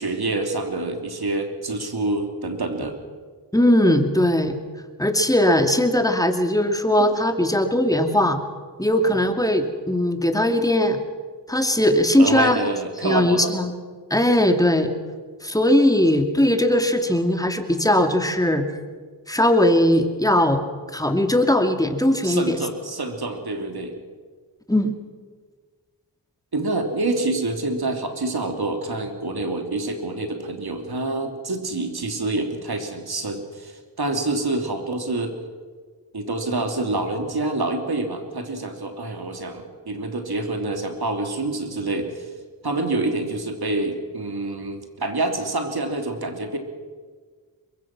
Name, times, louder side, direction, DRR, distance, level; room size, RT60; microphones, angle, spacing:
voice 1, 0.0-3.0 12.2-13.6 22.2-23.9 26.5-35.3 36.1-42.3 42.6-46.6, right 2 dB, 60° right, 5 dB, 3.1 m, -27 dB
voice 2, 3.5-4.5 5.0-8.4 8.8-11.0 11.5-12.6 13.0-13.7 14.1-14.9 15.4-18.7 19.3-20.6 20.9-22.6 24.7-24.9, left 1 dB, 10° left, 6 dB, 2.5 m, -19 dB
22.5 x 22.0 x 6.1 m, 1.5 s
cardioid pair, 40°, 42 cm